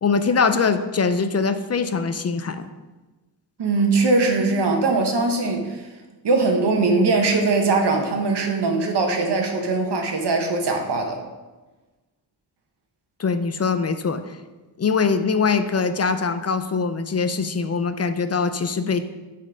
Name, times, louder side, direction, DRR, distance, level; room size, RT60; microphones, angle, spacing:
voice 1, 0.0-2.7 13.2-14.4 14.8-19.0, left 5 dB, 40° left, 10 dB, 0.5 m, -22 dB
voice 2, 3.6-5.8 6.2-11.2, right 3 dB, 90° right, 3 dB, 1.2 m, -21 dB
8.7 x 4.3 x 5.0 m, 1.2 s
wide cardioid pair, 125°, 39 cm